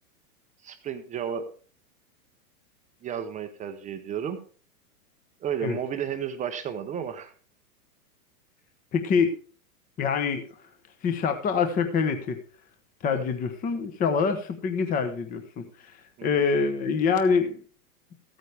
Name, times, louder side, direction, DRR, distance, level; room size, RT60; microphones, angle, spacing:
voice 1, 0.6-1.5 3.0-4.4 5.4-7.3 13.1-13.2 16.2-16.3, right 8 dB, 15° right, 8 dB, 0.7 m, -32 dB
voice 2, 8.9-9.3 10.0-10.4 11.0-12.4 13.0-15.7 16.2-17.6, left 5 dB, 20° left, 7 dB, 1.0 m, -25 dB
14.0 x 9.2 x 3.4 m, 0.40 s
hypercardioid pair, 135°, 46 cm